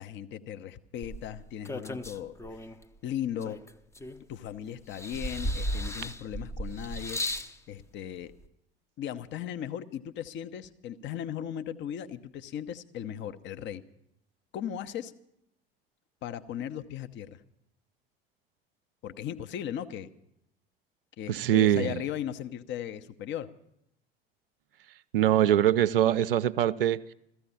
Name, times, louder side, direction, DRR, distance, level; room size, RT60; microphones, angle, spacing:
voice 1, 0.0-2.7 3.0-3.6 4.3-8.3 9.0-13.8 14.5-15.1 16.2-17.4 19.0-20.1 21.2-23.5, left 10 dB, 40° left, 0.9 m, -37 dB
sound 1, 1.0-2.8 3.4-4.5 4.9-7.5 8.4-8.5, equal, 10° left, 0.7 m, -35 dB
voice 2, 21.3-22.0 25.1-27.1, right 11 dB, 70° right, 0.5 m, -23 dB
16.0 x 14.5 x 5.6 m
figure-of-eight pair, 65°, 29 cm